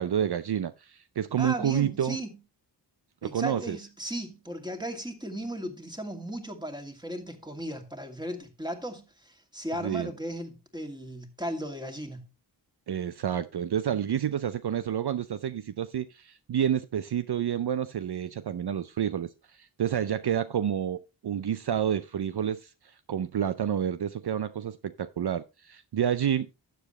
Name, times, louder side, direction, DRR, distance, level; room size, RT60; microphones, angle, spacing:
voice 1, 0.0-2.2 3.2-3.8 9.8-10.1 12.9-26.5, right 9 dB, 60° right, 0.6 m, -29 dB
voice 2, 1.4-2.4 3.2-12.2, equal, 10° right, 2.4 m, -36 dB
12.0 x 7.6 x 3.1 m
cardioid pair, 50°, 45 cm